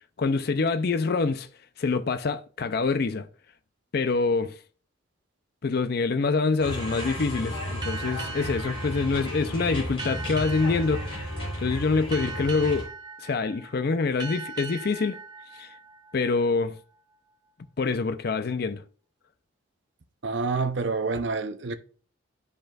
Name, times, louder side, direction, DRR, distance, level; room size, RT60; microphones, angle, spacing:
voice 1, 0.2-1.5 1.8-3.3 3.9-4.5 5.6-11.3 11.6-12.9 13.2-15.2 15.6-15.7 16.1-16.7 17.8-18.8, left 4 dB, 50° left, 0.4 m, -26 dB
sound 1, 6.6-12.8, equal, 30° left, 3.4 m, -33 dB
sound 2, 7.8-17.0, right 4 dB, 20° right, 0.8 m, -41 dB
voice 2, 20.2-21.7, right 4 dB, 60° right, 0.6 m, -27 dB
11.0 x 5.2 x 2.3 m
head